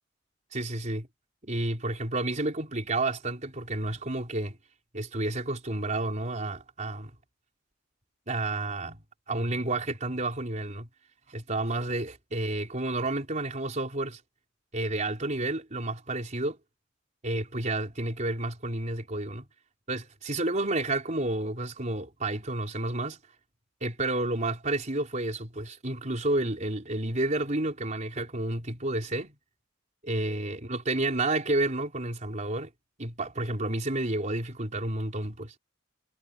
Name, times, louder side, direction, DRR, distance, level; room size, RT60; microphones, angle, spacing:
voice 1, 0.5-1.1 1.4-4.6 4.9-7.1 8.3-10.9 11.3-14.2 14.7-16.6 17.2-19.4 19.9-23.2 23.8-29.4 30.0-32.7 33.0-35.5, right 2 dB, 40° right, 4.3 m, -30 dB
head